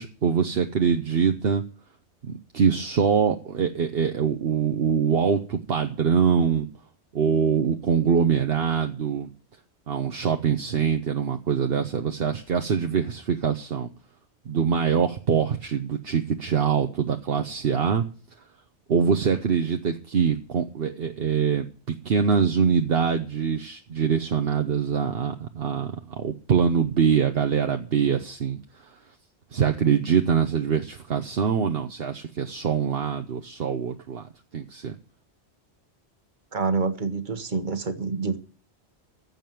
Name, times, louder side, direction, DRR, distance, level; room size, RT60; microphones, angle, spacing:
voice 1, 0.0-1.6 2.2-6.7 7.1-9.3 9.9-13.9 14.5-18.0 18.9-28.6 29.5-34.2 34.5-35.0, right 7 dB, 60° right, 6 dB, 1.1 m, -24 dB
voice 2, 36.5-38.4, right 4 dB, 45° right, 9 dB, 1.4 m, -27 dB
15.0 x 5.2 x 9.2 m, 0.41 s
omnidirectional pair, 1.1 m